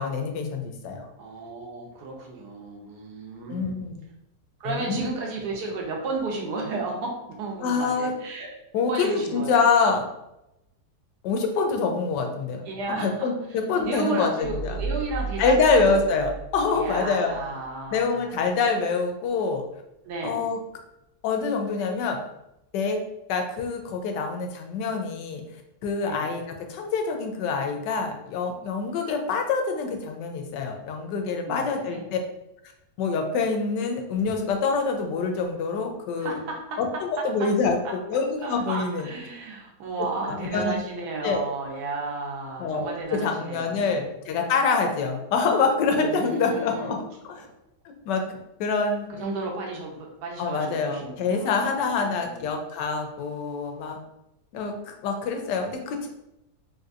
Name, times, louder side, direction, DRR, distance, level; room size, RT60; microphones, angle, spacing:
voice 1, 0.0-1.1 3.5-4.0 4.6-5.1 7.6-8.1 8.7-10.1 11.2-12.6 12.9-14.8 15.4-17.4 17.9-19.6 20.2-20.6 21.2-22.2 22.7-23.0 23.3-25.4 25.8-26.4 26.7-32.2 33.0-36.4 36.8-39.1 40.2-40.8 41.2-41.4 42.6-47.0 47.2-47.4 47.8-48.2 48.6-49.1 50.4-54.0 54.5-56.1, left 4 dB, 85° left, 4 dB, 1.2 m, -26 dB
voice 2, 1.2-3.8 4.6-8.6 8.9-9.6 12.6-13.3 13.7-16.0 16.7-18.3 20.0-20.5 26.0-26.3 31.5-32.0 36.2-36.8 37.2-37.3 38.4-44.0 46.0-46.9 47.4-47.5 49.1-52.5, right 3 dB, 75° right, -1 dB, 1.3 m, -33 dB
sound 1, 14.4-17.8, right 4 dB, ahead, 0.5 m, -34 dB
3.5 x 2.7 x 2.5 m, 0.88 s
omnidirectional pair, 1.8 m